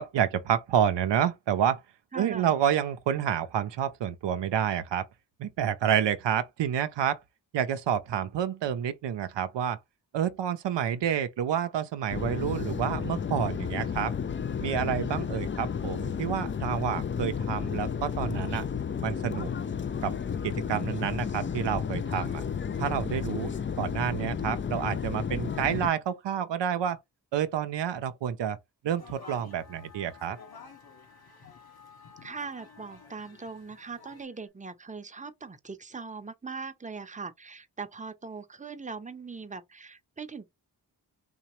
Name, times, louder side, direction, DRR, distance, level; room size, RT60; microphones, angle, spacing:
voice 1, 0.0-1.8 2.2-5.0 5.4-7.2 7.5-9.8 10.1-14.1 14.6-18.6 19.0-19.5 20.0-20.1 20.4-22.4 22.8-23.5 23.8-27.0 27.3-28.6 28.8-30.4, right 9 dB, 85° right, 0.5 m, -29 dB
voice 2, 2.1-2.5 32.2-40.5, right 4 dB, 20° right, 0.7 m, -40 dB
sound 1, 12.1-25.9, left 7 dB, 30° left, 0.4 m, -32 dB
sound 2, 28.9-34.2, left 5 dB, 60° left, 1.3 m, -52 dB
sound 3, 29.5-34.5, left 6 dB, 85° left, 2.4 m, -56 dB
3.9 x 2.8 x 3.0 m
cardioid pair, 45°, 42 cm